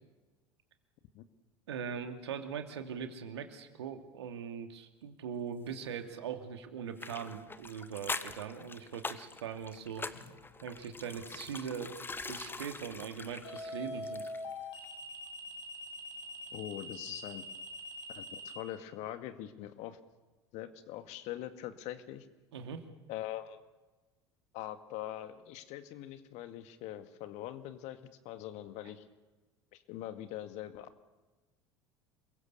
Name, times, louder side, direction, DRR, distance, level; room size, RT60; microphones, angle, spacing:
voice 1, 1.7-10.1 10.6-12.0 12.2-14.2 22.5-22.8, right 7 dB, 75° right, 6 dB, 2.7 m, -41 dB
sound 1, 7.0-14.6 14.8-14.9, left 3 dB, 15° left, 1.3 m, -43 dB
sound 2, 10.1-10.5 13.4-18.5, left 2 dB, 70° left, 6.9 m, -43 dB
voice 2, 16.5-17.5 18.2-20.0 20.5-22.3 23.1-23.6 24.5-29.0 29.7-30.9, left 13 dB, 55° left, 9 dB, 2.1 m, -43 dB
28.5 x 22.5 x 7.0 m, 1.2 s
figure-of-eight pair, 70°, 14 cm